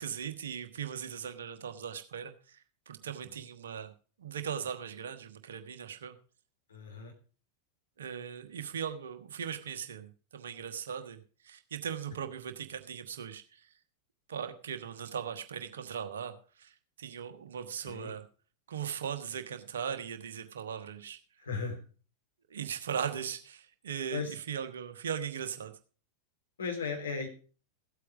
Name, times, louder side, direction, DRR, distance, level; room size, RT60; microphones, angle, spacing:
voice 1, 0.0-6.2 8.0-13.7 14.3-18.3 18.7-21.2 22.5-25.8, right 8 dB, 65° right, 8 dB, 1.2 m, -39 dB
voice 2, 6.7-7.1 17.8-18.1 21.4-21.8 24.1-24.3 26.6-27.3, left 5 dB, 70° left, 3 dB, 3.3 m, -36 dB
15.0 x 8.4 x 4.9 m, 0.39 s
figure-of-eight pair, 90°, 0 cm